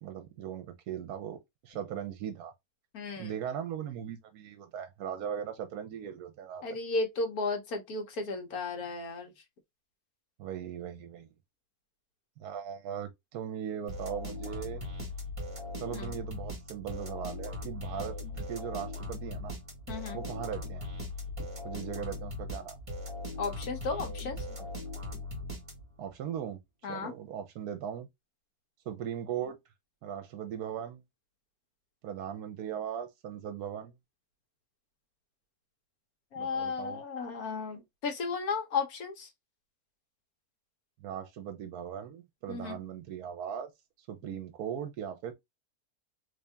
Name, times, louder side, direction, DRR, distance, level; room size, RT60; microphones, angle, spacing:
voice 1, 0.0-1.4 1.6-2.5 3.2-6.7 10.4-11.3 12.4-14.8 15.8-18.2 18.5-19.6 20.1-20.9 21.6-22.8 26.0-26.6 26.9-28.1 28.9-29.6 30.0-31.0 32.0-33.9 36.4-37.0 41.0-43.7 44.1-45.3, right 9 dB, 75° right, 1.2 m, -38 dB
voice 2, 2.9-3.3 6.6-9.3 15.9-16.1 19.9-20.2 23.4-24.4 26.8-27.1 36.3-39.3 42.5-42.8, left 4 dB, 70° left, 1.5 m, -34 dB
sound 1, 13.9-26.1, left 2 dB, 20° right, 1.4 m, -39 dB
3.4 x 2.7 x 3.3 m
omnidirectional pair, 1.6 m